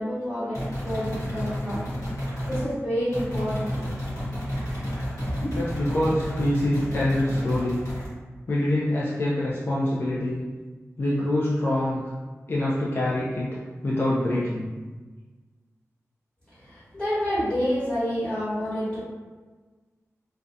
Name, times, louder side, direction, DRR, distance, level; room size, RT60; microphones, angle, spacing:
voice 1, 0.0-1.8 2.5-3.8 16.6-19.0, equal, 20° left, -12 dB, 1.1 m, -28 dB
sound 1, 0.5-2.7 3.1-8.1, equal, 75° left, 1.1 m, -31 dB
voice 2, 5.5-7.8 8.5-10.4 11.0-12.0 12.5-14.7, left 1 dB, 45° left, -6 dB, 0.4 m, -25 dB
2.3 x 2.1 x 2.6 m, 1.3 s
wide cardioid pair, 90°, 5 cm